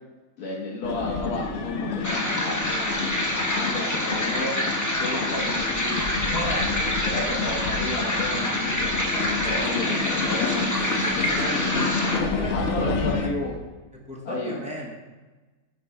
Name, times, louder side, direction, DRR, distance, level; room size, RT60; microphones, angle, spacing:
voice 1, 0.4-4.6 5.0-6.1 6.5-12.2 12.5-13.5 14.2-14.6, left 2 dB, 85° left, -4 dB, 1.6 m, -32 dB
sound 1, 0.8-13.3, left 4 dB, 65° left, 0.8 m, -30 dB
sound 2, 2.0-12.2, left 1 dB, 25° left, 0.3 m, -27 dB
voice 2, 6.3-7.6 12.1-13.3 14.1-15.0, equal, 5° right, -3 dB, 0.8 m, -35 dB
7.3 x 3.0 x 4.5 m, 1.2 s
omnidirectional pair, 1.6 m